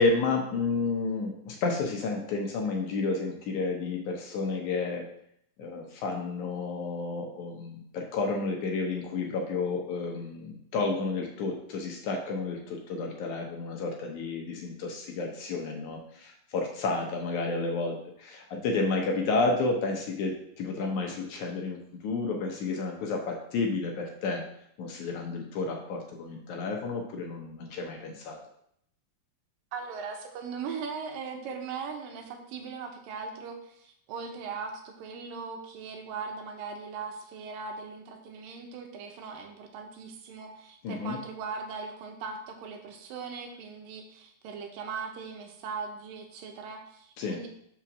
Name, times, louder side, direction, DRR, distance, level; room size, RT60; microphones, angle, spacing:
voice 1, 0.0-5.1 5.6-24.4 24.8-28.4 40.8-41.2 47.2-47.4, left 3 dB, 70° left, 1 dB, 2.1 m, -31 dB
voice 2, 29.7-47.5, right 5 dB, 80° right, 4 dB, 2.6 m, -39 dB
5.9 x 4.3 x 6.0 m, 0.71 s
omnidirectional pair, 4.0 m